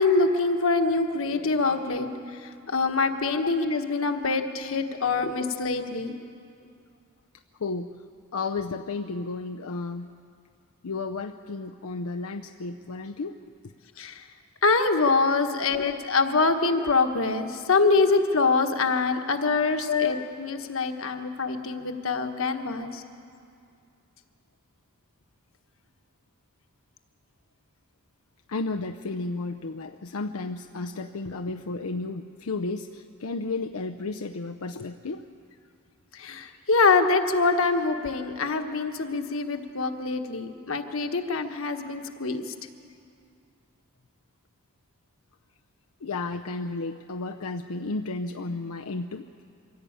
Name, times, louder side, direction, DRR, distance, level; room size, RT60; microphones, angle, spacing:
voice 1, 0.0-6.2 14.0-14.2 14.6-23.0 36.1-42.5, left 3 dB, 70° left, 6 dB, 1.4 m, -25 dB
voice 2, 7.6-7.9 8.3-10.1 10.8-13.4 15.7-15.9 19.9-20.2 28.5-35.2 46.0-49.3, left 4 dB, 90° left, 4 dB, 0.6 m, -32 dB
24.0 x 16.5 x 8.7 m, 2.4 s
head